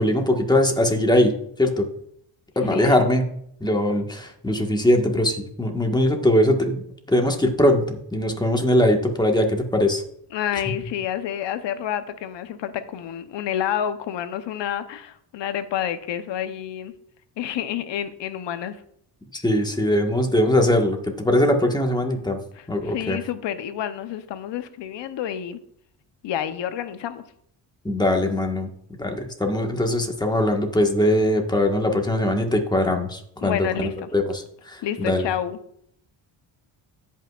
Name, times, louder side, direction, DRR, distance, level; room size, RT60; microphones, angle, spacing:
voice 1, 0.0-1.3 1.6-1.9 2.5-3.2 3.6-6.8 7.1-10.0 19.3-22.4 22.7-23.2 27.8-28.7 29.0-35.3, left 1 dB, 10° left, 3 dB, 1.5 m, -21 dB
voice 2, 2.7-3.0 10.3-16.9 17.4-18.8 22.3-25.6 26.2-27.2 33.4-34.1 34.8-35.6, left 10 dB, 70° left, 11 dB, 0.9 m, -29 dB
16.0 x 5.7 x 2.4 m, 0.69 s
cardioid pair, 75°, 45 cm